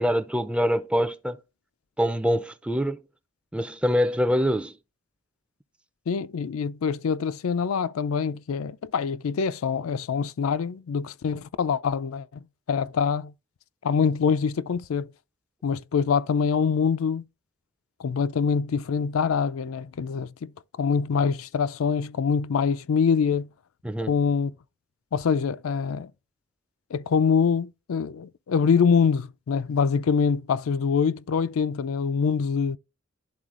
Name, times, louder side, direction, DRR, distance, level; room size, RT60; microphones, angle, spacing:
voice 1, 0.0-1.4 2.0-3.0 3.5-4.7 23.8-24.2, equal, 5° right, 0.4 m, -24 dB
voice 2, 6.1-12.3 12.7-13.3 13.8-15.1 15.6-17.2 18.0-20.5 20.8-23.5 24.1-24.5 25.1-26.1 26.9-32.8, left 6 dB, 80° left, 0.4 m, -24 dB
11.5 x 4.0 x 2.4 m
head